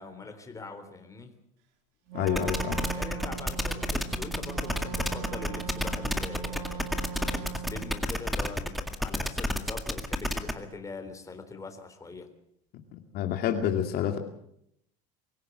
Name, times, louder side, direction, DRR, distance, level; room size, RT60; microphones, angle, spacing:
voice 1, 0.0-1.3 2.9-6.9 7.1-12.3, left 3 dB, 15° left, 6 dB, 3.7 m, -43 dB
voice 2, 2.1-2.9 13.1-14.2, left 9 dB, 55° left, 5 dB, 2.4 m, -28 dB
Wind instrument woodwind instrument, 2.1-8.0, right 8 dB, 75° right, 3.9 m, -39 dB
sound 1, 2.3-10.5, equal, ahead, 2.0 m, -30 dB
24.0 x 16.0 x 8.0 m, 0.73 s
supercardioid pair, 120°, 19 cm